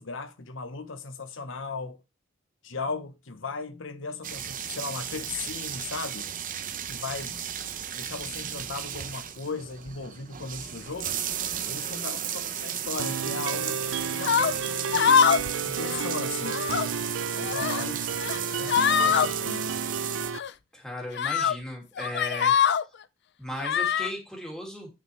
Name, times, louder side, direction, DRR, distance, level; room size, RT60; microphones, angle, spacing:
voice 1, 0.0-2.0 2.6-6.3 6.9-7.5 8.0-11.2 11.7-15.2 15.6-16.6 17.3-18.1 18.5-19.6, left 4 dB, 75° left, 1.0 m, -37 dB
sound 1, 4.2-20.3, right 9 dB, 45° right, 0.7 m, -34 dB
sound 2, 13.0-20.4, right 5 dB, 80° right, 0.5 m, -32 dB
sound 3, 14.2-14.5 14.9-15.5 15.8-16.0 16.4-16.9 17.4-17.9 18.2-18.4 18.7-19.3 20.3-20.5 21.1-21.5 22.0-22.8 23.6-24.1, left 7 dB, 60° left, 0.4 m, -23 dB
voice 2, 20.7-22.5 23.4-24.9, left 1 dB, 5° left, 2.3 m, -36 dB
9.3 x 6.0 x 3.2 m
head